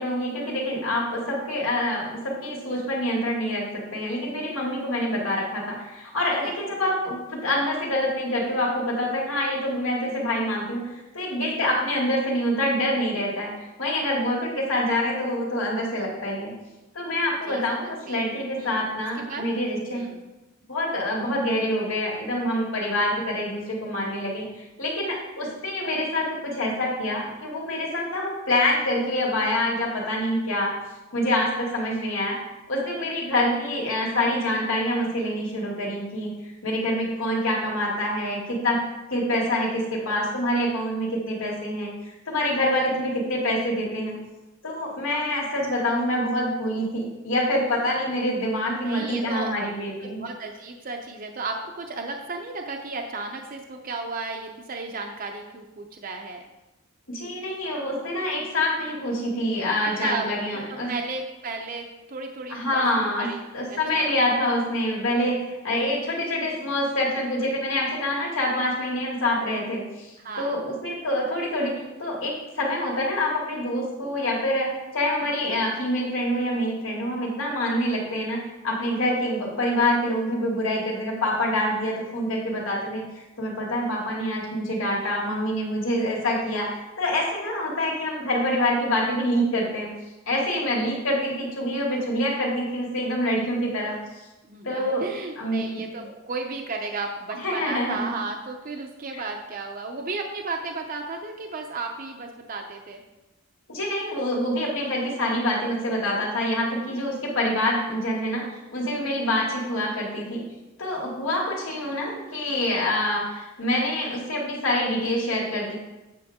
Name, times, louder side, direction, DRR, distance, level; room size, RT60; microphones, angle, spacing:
voice 1, 0.0-16.5 16.9-20.1 20.7-24.4 24.8-30.7 31.1-32.4 32.7-36.3 36.6-38.8 39.1-44.2 44.6-50.2 57.1-61.0 62.5-89.9 90.3-94.2 94.6-95.0 95.4-95.8 97.3-98.1 99.1-99.2 103.7-108.5 108.7-110.4 110.8-115.7, left 1 dB, 80° left, -3 dB, 2.5 m, -26 dB
voice 2, 17.5-18.3 18.6-18.8 19.2-19.4 19.9-20.2 48.7-49.5 50.0-56.4 59.8-60.3 60.7-64.1 70.2-70.6 94.5-103.0, right 3 dB, 45° right, 2 dB, 0.6 m, -34 dB
8.9 x 6.9 x 3.6 m, 1.0 s
head